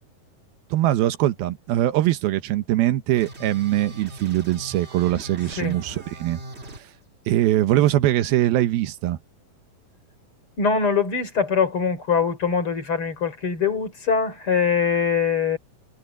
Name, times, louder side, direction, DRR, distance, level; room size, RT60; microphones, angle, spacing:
voice 1, 0.7-6.4 7.3-9.2, right 14 dB, 85° right, 2.9 m, -22 dB
sound 1, 3.2-6.8, right 1 dB, 25° right, 1.5 m, -40 dB
voice 2, 10.6-15.6, left 6 dB, 35° left, 4.1 m, -23 dB
omnidirectional pair, 4.2 m